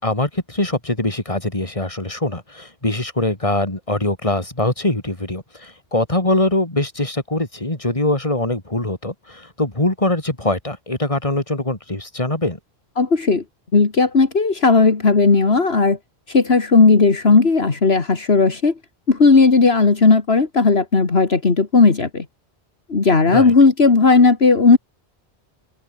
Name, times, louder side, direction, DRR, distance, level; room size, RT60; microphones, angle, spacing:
voice 1, 0.0-12.6 23.3-23.5, left 1 dB, 30° left, 3.8 m, -22 dB
voice 2, 13.0-13.4 13.7-16.0 16.3-18.7 19.1-22.2 22.9-24.8, left 4 dB, 65° left, 2.4 m, -15 dB
omnidirectional pair, 1.1 m